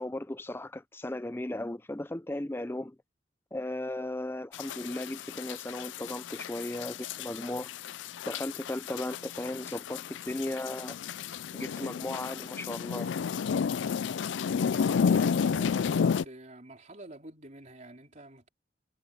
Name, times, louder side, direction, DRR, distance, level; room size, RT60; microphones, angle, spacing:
voice 1, 0.0-3.0 3.5-7.7 8.3-11.0 11.5-13.1, left 1 dB, 10° left, 0.5 m, -36 dB
sound 1, 4.5-16.2, left 6 dB, 70° left, 0.4 m, -32 dB
voice 2, 14.8-18.5, right 1 dB, 40° right, 4.0 m, -48 dB
head